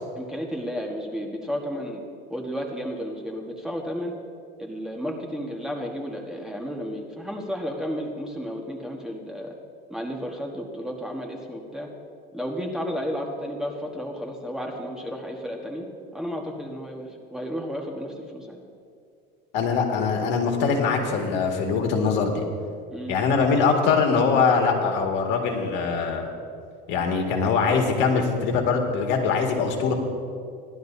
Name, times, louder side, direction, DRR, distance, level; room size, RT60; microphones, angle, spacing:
voice 1, 0.1-2.0 2.3-4.1 4.6-9.5 9.9-11.9 12.3-15.9 16.1-18.6 22.9-23.2, equal, 5° right, 0 dB, 1.4 m, -32 dB
voice 2, 19.5-22.4 23.1-26.2 26.9-29.9, left 5 dB, 60° left, 2 dB, 2.0 m, -22 dB
18.0 x 11.5 x 2.7 m, 2.3 s
supercardioid pair, 115°, 21 cm